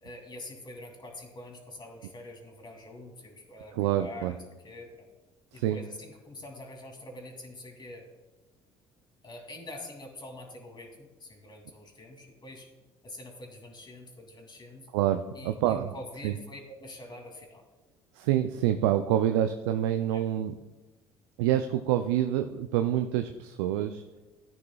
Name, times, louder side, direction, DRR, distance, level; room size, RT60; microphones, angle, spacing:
voice 1, 0.0-5.1 5.5-8.1 9.2-12.7 13.0-14.9 15.3-17.6 20.1-20.2, left 1 dB, 30° left, 3 dB, 2.7 m, -45 dB
voice 2, 3.8-4.3 5.6-5.8 14.9-15.9 16.2-16.3 18.2-20.6 21.4-24.0, right 11 dB, 80° right, 8 dB, 0.5 m, -27 dB
14.5 x 9.6 x 2.3 m, 1.1 s
hypercardioid pair, 60°, 14 cm